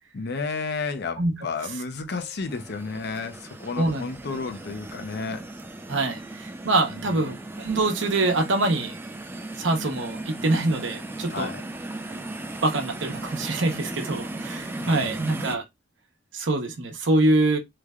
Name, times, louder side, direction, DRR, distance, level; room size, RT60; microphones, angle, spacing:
voice 1, 0.1-5.5 7.0-7.3 11.3-11.6 14.8-15.2, left 4 dB, 55° left, 0.5 m, -32 dB
sound 1, 2.5-15.6, right 2 dB, 10° right, 0.3 m, -37 dB
voice 2, 3.8-4.1 5.9-9.0 9.6-11.5 12.6-15.6 16.3-17.6, right 2 dB, 70° right, 0.8 m, -24 dB
3.2 x 2.1 x 3.5 m
head